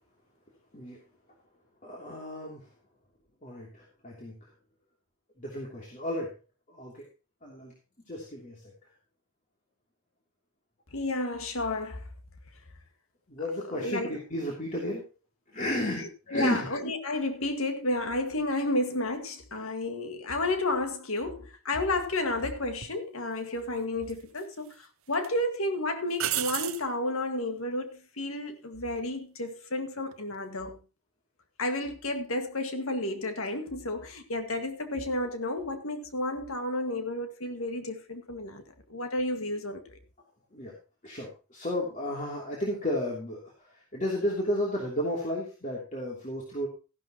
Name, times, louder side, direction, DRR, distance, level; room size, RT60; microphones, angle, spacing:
voice 1, 1.8-2.7 3.4-4.5 5.4-6.3 6.7-7.0 7.4-7.7 8.1-8.7 13.3-15.0 15.5-16.7 40.5-40.7 41.0-46.7, left 1 dB, 35° left, 2.9 m, -33 dB
voice 2, 10.9-12.1 13.7-14.2 16.0-30.8 31.6-38.6 38.9-40.0, left 2 dB, 75° left, 1.9 m, -31 dB
sound 1, 22.8-23.0 24.1-24.7 25.1-25.3 26.2-26.9 30.0-30.3, right 13 dB, 75° right, 0.7 m, -32 dB
14.5 x 12.0 x 3.0 m
head